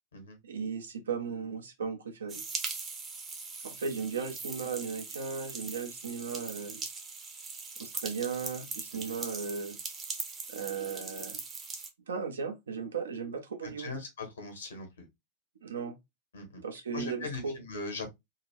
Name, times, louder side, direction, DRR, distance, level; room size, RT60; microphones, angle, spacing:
voice 1, 0.4-2.4 3.6-6.8 7.8-9.8 10.5-11.4 12.1-14.0 15.6-16.0 16.6-17.5, right 5 dB, 70° right, 0.7 m, -36 dB
sound 1, 2.3-11.9, right 4 dB, 25° right, 0.7 m, -41 dB
voice 2, 13.6-15.1 16.3-16.6 16.9-18.1, left 3 dB, 70° left, 1.2 m, -40 dB
2.8 x 2.5 x 3.0 m
figure-of-eight pair, 90°, 0 cm